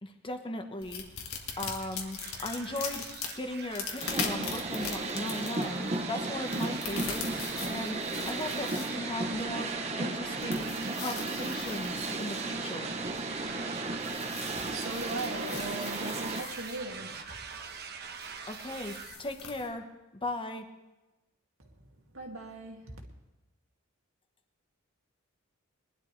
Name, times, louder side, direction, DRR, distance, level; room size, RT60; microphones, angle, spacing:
voice 1, 0.0-3.0 3.4-10.7 11.0-13.0 18.5-19.9 20.2-20.7, left 1 dB, 25° left, 6 dB, 1.2 m, -38 dB
sound 1, 0.8-19.7, left 6 dB, 90° left, 1.8 m, -42 dB
sound 2, 1.5-19.2, right 6 dB, 50° right, 1.1 m, -44 dB
sound 3, 4.0-16.4, right 2 dB, 30° right, 0.9 m, -35 dB
voice 2, 14.7-17.2 21.6-21.7 22.1-23.0, right 2 dB, 70° right, 1 dB, 2.3 m, -39 dB
21.0 x 11.5 x 3.3 m, 1.0 s
head